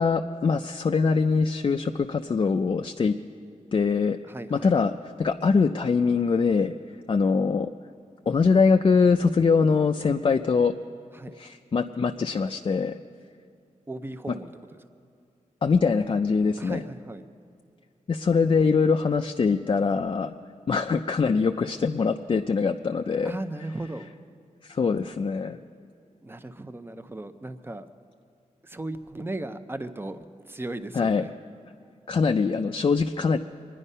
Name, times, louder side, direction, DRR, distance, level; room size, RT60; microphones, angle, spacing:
voice 1, 0.0-3.2 3.7-4.2 4.5-6.7 7.1-7.7 8.3-10.7 11.4-13.0 14.3-14.4 15.6-16.8 18.1-20.3 20.7-23.4 24.6-25.6 30.9-31.2 32.1-33.4, left 5 dB, 40° left, 5 dB, 0.4 m, -23 dB
voice 2, 4.3-4.7 11.1-11.4 13.9-14.5 16.6-17.2 23.2-24.1 26.2-27.9 28.6-31.3, right 2 dB, 15° right, 10 dB, 0.6 m, -36 dB
24.0 x 10.0 x 5.5 m, 2.3 s
wide cardioid pair, 135°, 14 cm